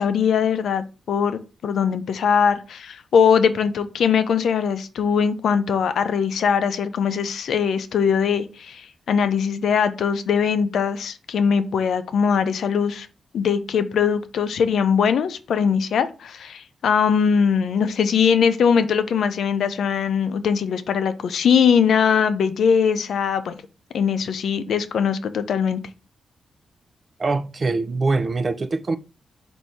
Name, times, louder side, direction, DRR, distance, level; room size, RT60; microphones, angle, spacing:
voice 1, 0.0-13.1 13.3-23.6 23.9-25.8, left 7 dB, 80° left, 0.5 m, -21 dB
voice 2, 27.2-29.0, right 3 dB, 40° right, 0.4 m, -23 dB
4.1 x 2.7 x 4.6 m
cardioid pair, 85°, 0 cm